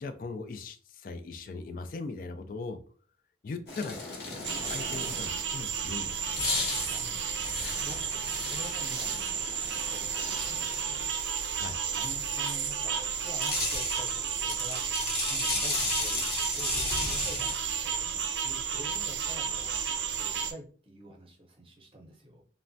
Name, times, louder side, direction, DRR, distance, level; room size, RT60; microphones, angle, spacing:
voice 1, 0.0-2.8 3.4-4.0 4.7-6.6 11.5-11.8, left 3 dB, 50° left, 9 dB, 0.3 m, -39 dB
sound 1, 3.7-5.5 6.2-11.0 13.2-17.6, left 3 dB, 65° left, 0.9 m, -35 dB
sound 2, 4.4-20.5, right 7 dB, 75° right, 0.4 m, -32 dB
voice 2, 6.7-7.3 7.7-11.1 11.9-15.0 15.3-22.4, equal, 30° right, 1 dB, 0.7 m, -48 dB
3.2 x 2.1 x 2.6 m, 0.42 s
head